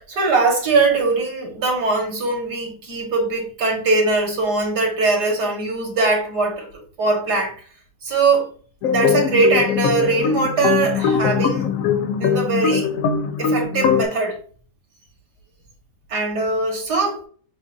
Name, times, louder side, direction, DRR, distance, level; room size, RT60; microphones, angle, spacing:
voice 1, 0.0-7.6 8.0-8.5 8.9-11.7 12.2-12.9 13.4-14.4 16.1-17.2, right 3 dB, 70° right, 2.0 m, -21 dB
sound 1, 8.8-14.1, left 6 dB, 70° left, 0.8 m, -21 dB
7.2 x 2.5 x 2.5 m
omnidirectional pair, 1.8 m